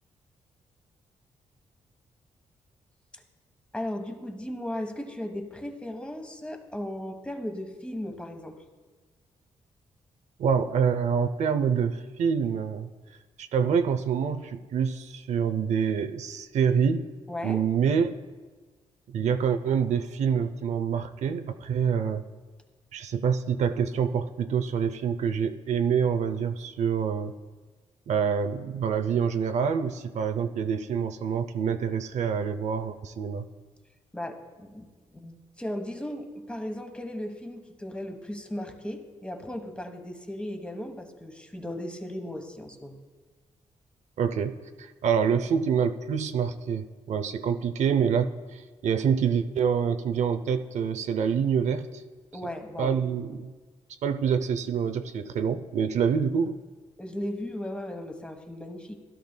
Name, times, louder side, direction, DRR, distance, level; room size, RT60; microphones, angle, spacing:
voice 1, 3.7-8.6 17.3-17.7 34.1-34.9 35.1-43.0 52.3-52.9 57.0-59.0, left 1 dB, 10° left, 5 dB, 1.2 m, -36 dB
voice 2, 10.4-12.9 13.4-17.1 17.4-18.1 19.1-22.2 22.9-27.3 28.1-33.4 44.2-52.0 52.8-53.5 54.0-56.6, right 7 dB, 70° right, 9 dB, 0.5 m, -26 dB
16.0 x 11.5 x 2.2 m, 1.4 s
cardioid pair, 85°, 12 cm